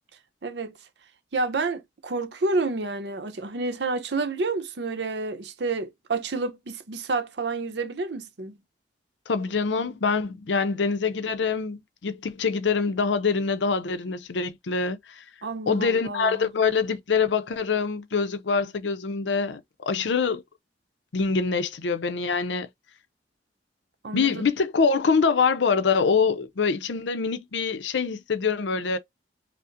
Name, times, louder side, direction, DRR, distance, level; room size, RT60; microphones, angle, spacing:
voice 1, 0.4-0.7 1.3-8.6 15.4-16.5 24.0-24.5, right 3 dB, 75° right, 0.7 m, -29 dB
voice 2, 9.3-15.2 15.7-20.4 21.1-22.7 24.1-29.0, left 5 dB, 85° left, 0.6 m, -25 dB
5.2 x 2.1 x 2.5 m
head